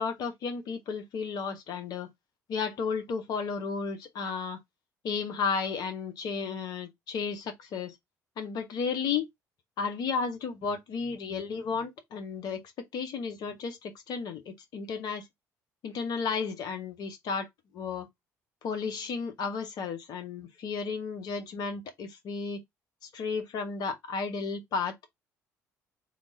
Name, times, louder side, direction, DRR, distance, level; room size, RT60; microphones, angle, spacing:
voice 1, 0.0-2.1 2.5-4.6 5.0-8.0 8.4-9.3 9.8-12.6 12.9-15.3 15.8-17.5 17.7-18.1 18.6-22.6 23.0-25.0, left 5 dB, 50° left, 1.1 m, -33 dB
3.5 x 2.5 x 3.8 m
figure-of-eight pair, 50°, 9 cm